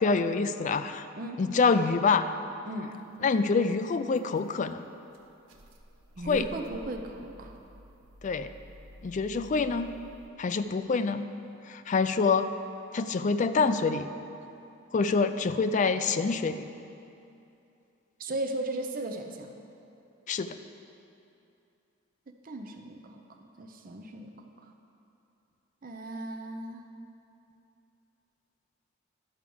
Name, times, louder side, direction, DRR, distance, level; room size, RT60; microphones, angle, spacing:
voice 1, 0.0-1.1 1.4-2.3 3.2-4.8 6.3-6.5 8.2-8.5 9.0-9.9 10.4-11.3 11.7-12.5 12.9-14.1 14.9-16.7 20.3-20.6, left 4 dB, 40° left, 10 dB, 0.3 m, -26 dB
voice 2, 2.7-3.0 6.2-7.6 18.2-19.5 22.4-23.2 23.6-24.3 25.8-26.9, right 1 dB, 45° right, 4 dB, 0.6 m, -36 dB
sound 1, 3.1-3.3 4.1-4.4 4.9-10.3, equal, 85° right, 0.8 m, -50 dB
11.0 x 4.8 x 7.0 m, 2.7 s
head